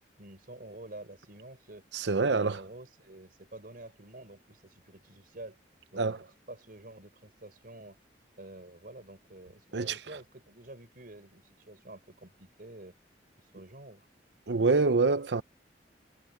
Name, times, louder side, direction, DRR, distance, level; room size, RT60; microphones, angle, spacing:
voice 1, 0.2-1.8 2.2-5.6 5.9-8.0 8.4-12.9 13.4-14.1, right 2 dB, 55° right, 4.7 m, -48 dB
voice 2, 1.9-2.6 6.0-6.2 9.7-10.0 14.5-15.4, right 4 dB, 80° right, 0.8 m, -26 dB
head